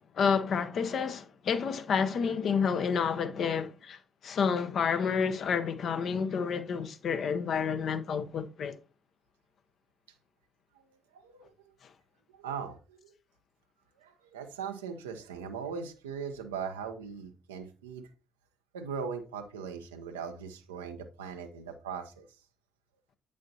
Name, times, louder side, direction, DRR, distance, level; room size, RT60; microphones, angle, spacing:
voice 1, 0.1-8.8, left 6 dB, 55° left, 0.7 m, -29 dB
voice 2, 10.8-11.7 12.3-13.1 14.0-18.1 18.7-22.3, right 6 dB, 80° right, 0.6 m, -40 dB
8.3 x 6.4 x 2.7 m
figure-of-eight pair, 40°, 0 cm